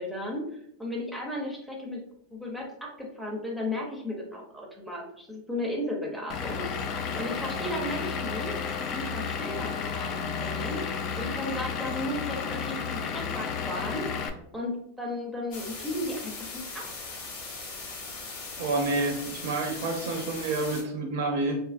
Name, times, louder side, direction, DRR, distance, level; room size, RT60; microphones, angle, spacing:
voice 1, 0.0-2.0 2.3-6.7 7.1-8.5 8.9-10.8 11.2-14.0 14.5-16.9, left 1 dB, ahead, -1 dB, 0.6 m, -35 dB
Vehicle / Engine, 6.3-14.3, left 6 dB, 45° left, 0.3 m, -32 dB
sound 1, 15.5-20.8, left 3 dB, 65° left, 0.8 m, -39 dB
voice 2, 18.6-21.6, right 2 dB, 70° right, 2 dB, 0.4 m, -29 dB
2.7 x 2.4 x 2.4 m, 0.75 s
hypercardioid pair, 115°, 0 cm